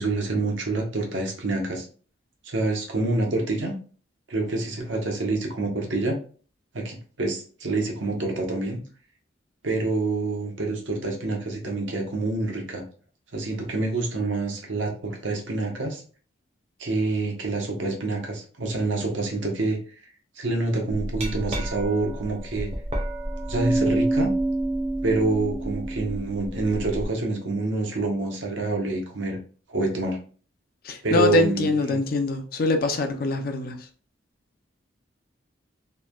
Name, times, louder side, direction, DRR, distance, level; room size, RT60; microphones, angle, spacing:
voice 1, 0.0-1.9 2.5-3.7 4.3-6.2 6.7-8.8 9.6-12.8 13.3-16.0 16.8-19.8 20.4-22.7 23.5-24.3 25.0-29.4 29.7-30.2 31.0-32.0, right 2 dB, 85° right, 0.8 m, -27 dB
Glass, 20.9-27.1, right 2 dB, 35° right, 0.6 m, -28 dB
voice 2, 30.8-33.8, left 3 dB, 50° left, 0.4 m, -24 dB
3.1 x 2.1 x 2.2 m
head